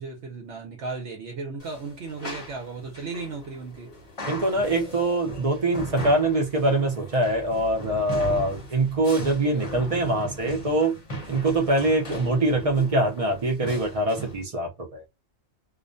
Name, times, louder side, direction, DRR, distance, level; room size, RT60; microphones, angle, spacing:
voice 1, 0.0-3.9, right 4 dB, 65° right, 0.9 m, -35 dB
sound 1, 1.6-14.4, equal, 30° left, 0.7 m, -38 dB
voice 2, 4.3-11.0 11.3-15.0, right 2 dB, 40° right, 0.5 m, -24 dB
2.4 x 2.1 x 2.5 m
omnidirectional pair, 1.3 m